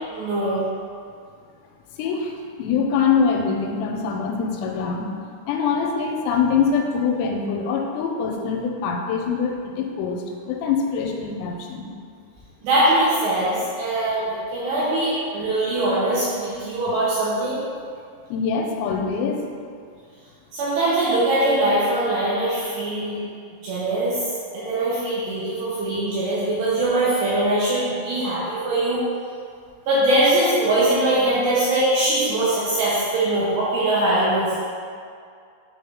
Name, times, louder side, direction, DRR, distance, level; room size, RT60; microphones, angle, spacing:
voice 1, 0.1-0.6 12.6-17.6 20.5-23.2 23.6-24.2 24.5-29.0 29.9-34.6, right 1 dB, 80° right, -9 dB, 2.6 m, -22 dB
voice 2, 2.0-11.9 18.3-19.5, left 5 dB, 85° left, 2 dB, 3.2 m, -24 dB
8.6 x 3.7 x 3.5 m, 2.3 s
omnidirectional pair, 6.0 m